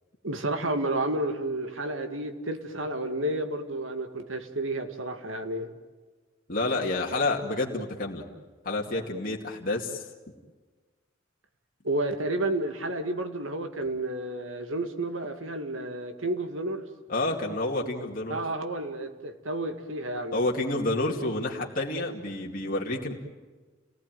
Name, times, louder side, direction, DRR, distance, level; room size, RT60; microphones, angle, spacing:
voice 1, 0.2-5.7 11.8-16.9 18.3-20.4, right 1 dB, 75° right, 7 dB, 2.3 m, -31 dB
voice 2, 6.5-8.2 8.6-10.0 17.1-18.4 20.3-23.1, left 2 dB, 45° left, -2 dB, 2.4 m, -29 dB
30.0 x 19.0 x 9.3 m, 1.4 s
head